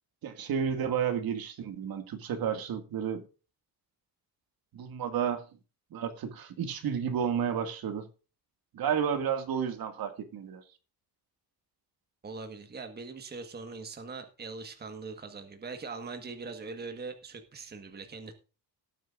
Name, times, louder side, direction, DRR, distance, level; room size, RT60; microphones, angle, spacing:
voice 1, 0.2-3.2 4.7-5.5 5.9-8.1 8.7-10.6, right 8 dB, 60° right, 2.2 m, -31 dB
voice 2, 12.2-18.3, right 4 dB, 25° right, 1.6 m, -41 dB
18.0 x 9.2 x 2.6 m
cardioid pair, 155°, 40 cm